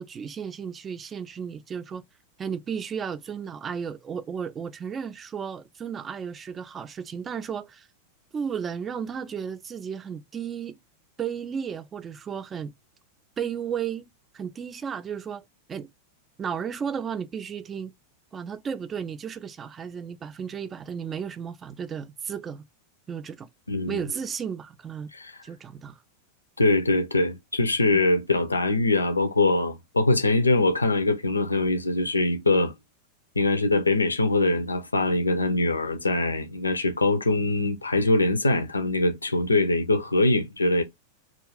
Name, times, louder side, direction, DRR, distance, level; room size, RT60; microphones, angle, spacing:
voice 1, 0.0-2.0 2.4-7.9 8.3-10.8 11.2-12.7 13.4-14.1 14.3-15.4 15.7-15.9 16.4-17.9 18.3-22.7 23.1-23.5 23.9-25.1 25.4-26.0 27.9-28.0, right 7 dB, 20° right, 0.3 m, -34 dB
voice 2, 23.7-24.0 25.1-25.3 26.6-32.7 33.4-40.8, left 2 dB, 80° left, 0.5 m, -23 dB
2.4 x 2.4 x 3.2 m
figure-of-eight pair, 90°, 0 cm